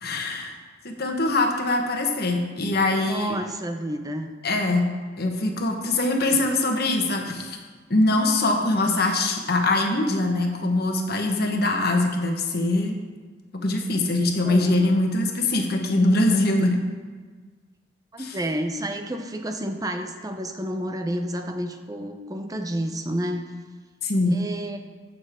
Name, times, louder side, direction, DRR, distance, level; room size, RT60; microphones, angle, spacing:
voice 1, 0.0-0.5 0.8-3.4 4.4-4.9 5.2-7.6 7.9-13.0 13.5-16.8 18.2-18.4 24.0-24.3, left 2 dB, 55° left, 3 dB, 1.4 m, -23 dB
voice 2, 2.9-4.3 14.4-14.8 18.1-23.5 24.2-24.8, right 1 dB, 20° right, 6 dB, 0.8 m, -30 dB
15.0 x 6.7 x 3.7 m, 1.5 s
head